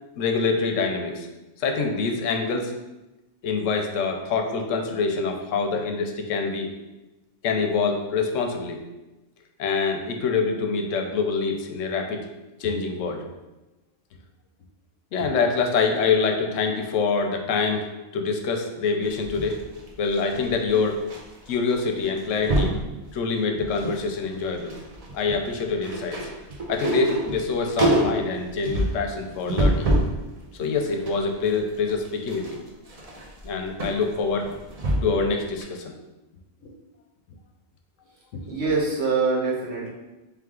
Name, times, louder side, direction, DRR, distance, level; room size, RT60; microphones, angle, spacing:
voice 1, 0.2-1.3 1.6-2.7 3.4-6.7 7.4-8.8 9.6-12.2 12.6-13.3 15.1-19.7 20.0-21.0 21.5-22.7 23.1-24.7 25.1-26.3 26.7-29.9 30.6-32.6 33.4-34.5 35.0-36.0 36.6-36.7 38.3-38.4, left 4 dB, 85° left, 4 dB, 1.0 m, -25 dB
sound 1, 19.0-21.2 21.5-21.7 22.0-22.8 23.4-24.0 24.3-30.2 30.6-35.3 35.6-35.7, right 1 dB, 40° right, 0.6 m, -27 dB
voice 2, 38.5-39.9, right 4 dB, 65° right, -3 dB, 1.2 m, -24 dB
3.4 x 3.4 x 3.6 m, 1.0 s
omnidirectional pair, 1.3 m